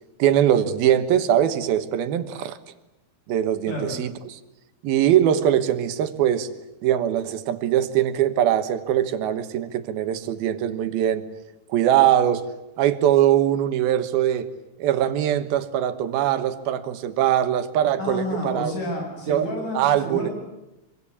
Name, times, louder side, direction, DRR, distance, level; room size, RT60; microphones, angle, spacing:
voice 1, 0.2-2.6 3.3-4.3 4.8-6.5 6.8-11.2 11.7-12.5 12.8-14.5 14.8-18.7 19.3-19.5 19.7-20.3, right 11 dB, 90° right, 11 dB, 3.2 m, -21 dB
voice 2, 18.0-20.3, left 1 dB, 60° left, 1 dB, 9.1 m, -30 dB
24.5 x 24.5 x 8.7 m, 0.93 s
omnidirectional pair, 4.1 m